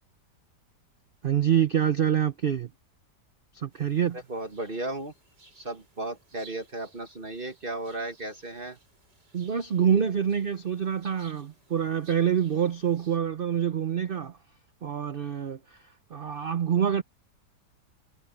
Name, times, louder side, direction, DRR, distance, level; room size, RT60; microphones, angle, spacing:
voice 1, 1.2-2.7 3.5-4.2 9.3-14.4 14.8-15.8 16.1-17.0, right 8 dB, 50° right, 0.6 m, -26 dB
sound 1, 3.7-13.2, right 2 dB, 85° right, 8.5 m, -58 dB
voice 2, 4.1-5.1 5.6-8.8, right 2 dB, 30° right, 1.8 m, -35 dB
omnidirectional pair, 1.8 m